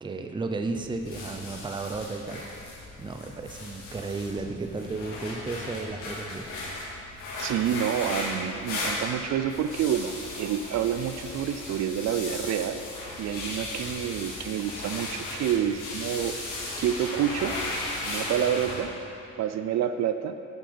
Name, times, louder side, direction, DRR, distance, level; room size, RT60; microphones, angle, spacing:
voice 1, 0.0-2.5 3.0-6.5, right 3 dB, 15° right, 5 dB, 0.6 m, -33 dB
sound 1, 0.7-18.8, left 2 dB, 90° left, 2.2 m, -36 dB
voice 2, 7.4-12.8 13.2-16.4 16.8-17.6 18.0-18.9 19.4-20.3, right 9 dB, 65° right, 10 dB, 0.4 m, -28 dB
10.0 x 5.7 x 5.1 m, 2.8 s
cardioid pair, 90°, 30 cm